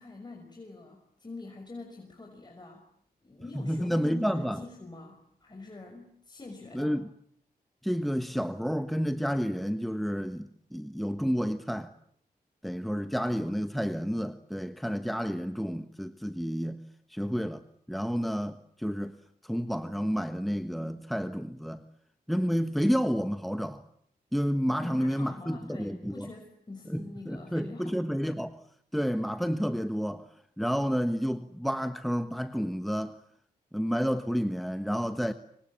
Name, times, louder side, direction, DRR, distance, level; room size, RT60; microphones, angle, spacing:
voice 1, 0.0-2.9 3.2-7.0 24.8-28.0, left 2 dB, 25° left, 6.1 m, -45 dB
voice 2, 3.5-4.6 6.7-7.1 7.8-11.9 12.6-16.8 17.1-19.2 19.4-21.8 22.3-23.8 24.3-26.3 26.9-28.6 28.9-30.3 30.6-33.2 33.7-35.3, equal, ahead, 1.3 m, -30 dB
26.5 x 25.0 x 8.7 m
cardioid pair, 60°, 16 cm